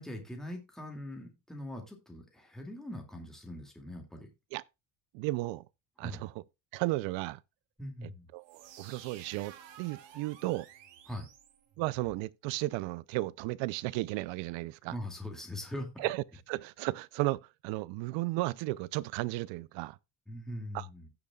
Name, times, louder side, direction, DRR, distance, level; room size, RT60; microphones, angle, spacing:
voice 1, 0.0-4.3 6.0-6.2 7.8-8.3 11.1-11.3 14.9-16.1 20.3-21.1, left 1 dB, ahead, 2.2 m, -42 dB
voice 2, 5.1-5.6 6.0-6.4 6.7-7.4 8.0-10.7 11.8-14.9 16.0-20.0 20.7-20.9, right 19 dB, 90° right, 0.6 m, -34 dB
sound 1, 8.4-12.2, right 9 dB, 75° right, 2.0 m, -53 dB
16.0 x 6.8 x 2.3 m
cardioid pair, 155°, 43 cm